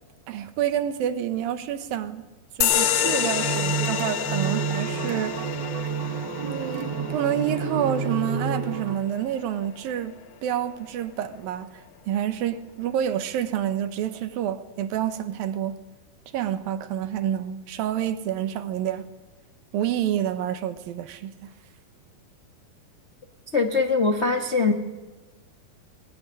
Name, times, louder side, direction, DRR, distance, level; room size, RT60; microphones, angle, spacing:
voice 1, 0.3-2.3 2.6-5.4 6.4-15.8 16.3-19.1 19.7-21.5, right 10 dB, 70° right, 2.9 m, -28 dB
sound 1, 2.6-9.7, left 10 dB, 70° left, 2.8 m, -29 dB
sound 2, 2.7-8.9, right 6 dB, 50° right, 2.4 m, -30 dB
voice 2, 23.5-24.7, left 4 dB, 85° left, 0.6 m, -22 dB
20.5 x 20.5 x 9.9 m
omnidirectional pair, 4.4 m